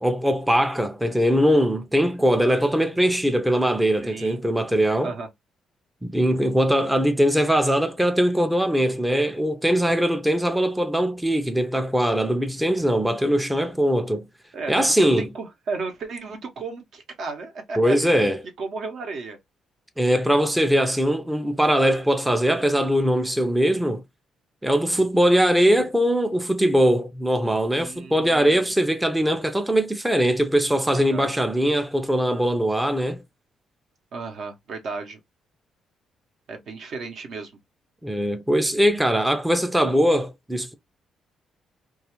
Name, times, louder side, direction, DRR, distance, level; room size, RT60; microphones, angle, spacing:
voice 1, 0.0-5.1 6.0-14.3 14.7-15.3 17.8-18.4 20.0-24.0 24.6-33.2 38.0-40.7, equal, 5° right, 0.4 m, -21 dB
voice 2, 4.0-4.4 5.0-5.3 14.5-18.3 18.6-19.4 27.7-28.7 31.0-31.4 34.1-35.2 36.5-37.5, right 4 dB, 65° right, 0.8 m, -34 dB
2.3 x 2.3 x 2.9 m
cardioid pair, 90°, 0 cm